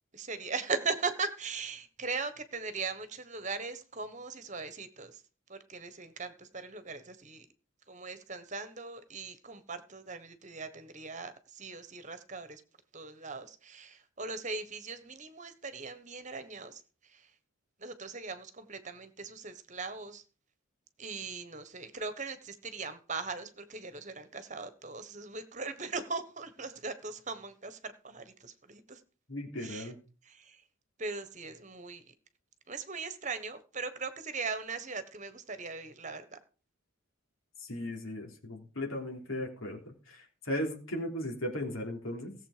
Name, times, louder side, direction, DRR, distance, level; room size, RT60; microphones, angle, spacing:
voice 1, 0.1-5.1 5.5-7.4 7.9-12.6 12.9-16.8 17.8-20.2 21.0-29.0 29.6-29.9 30.3-30.6 31.0-32.0 32.7-36.4 37.9-38.0, right 4 dB, 35° right, 11 dB, 1.3 m, -39 dB
voice 2, 29.3-30.0 37.6-42.4, left 1 dB, 80° left, 2 dB, 3.5 m, -37 dB
17.0 x 7.6 x 5.0 m, 0.37 s
head